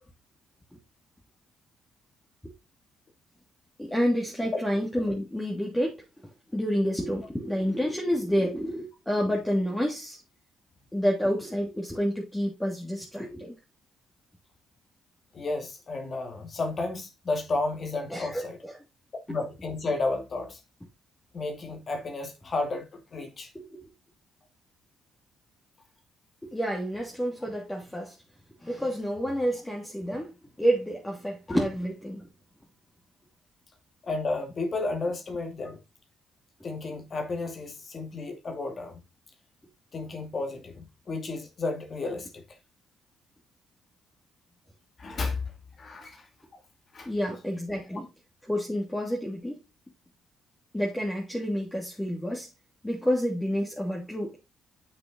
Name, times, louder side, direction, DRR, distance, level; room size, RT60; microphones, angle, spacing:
voice 1, 3.8-6.0 6.5-10.2 10.9-13.5 18.1-18.7 23.5-23.8 26.4-28.1 28.6-30.3 30.6-32.3 47.1-48.1 48.5-49.6 50.7-52.5 52.8-54.3, equal, 10° left, 2.9 m, -29 dB
voice 2, 15.3-18.6 19.3-20.6 21.3-23.5 31.5-31.6 34.0-35.8 36.6-39.0 39.9-42.4 45.0-45.5 45.8-46.3 46.9-47.1 47.9-48.0, left 3 dB, 45° left, 2.5 m, -32 dB
8.0 x 6.8 x 3.9 m
cardioid pair, 90°, 0 cm